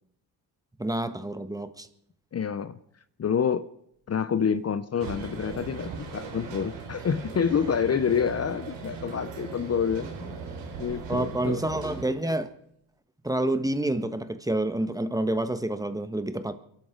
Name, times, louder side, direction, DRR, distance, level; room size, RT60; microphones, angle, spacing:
voice 1, 0.8-1.9 11.1-12.5 13.2-16.5, right 1 dB, 10° right, 10 dB, 1.4 m, -28 dB
voice 2, 2.3-2.8 3.2-3.7 4.1-10.4 10.8-11.6, left 7 dB, 35° left, 14 dB, 0.7 m, -27 dB
sound 1, 4.6-4.7 5.0-6.4 6.7-7.8 10.5-12.1, right 9 dB, 60° right, 1.1 m, -45 dB
sound 2, 5.0-12.1, right 5 dB, 75° right, 3.0 m, -39 dB
29.5 x 11.5 x 3.9 m, 0.71 s
supercardioid pair, 65°, 44 cm